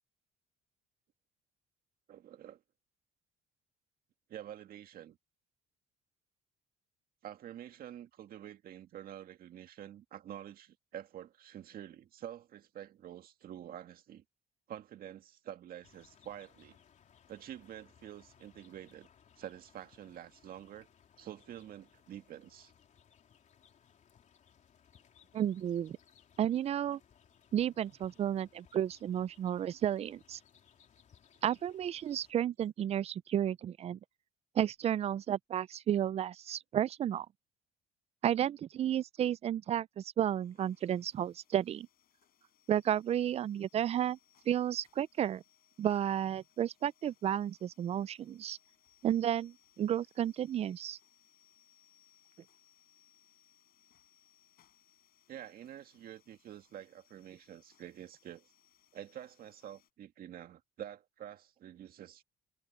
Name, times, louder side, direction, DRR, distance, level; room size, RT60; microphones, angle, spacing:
voice 1, 2.1-2.6 4.3-5.2 7.2-14.2 14.7-16.8 17.3-19.1 19.4-20.9 21.2-22.7 55.3-58.5 58.9-62.2, right 11 dB, 60° right, 1.9 m, -48 dB
sound 1, 15.8-32.3, left 8 dB, 45° left, 3.5 m, -65 dB
voice 2, 25.3-26.0 26.4-27.0 27.5-30.4 31.4-34.0 34.6-37.3 38.2-41.9 42.7-44.2 44.5-45.4 45.8-48.6 49.0-51.0, right 10 dB, 40° right, 0.4 m, -32 dB
sound 2, 40.3-59.9, left 12 dB, 65° left, 5.1 m, -69 dB
cardioid pair, 110°, 17 cm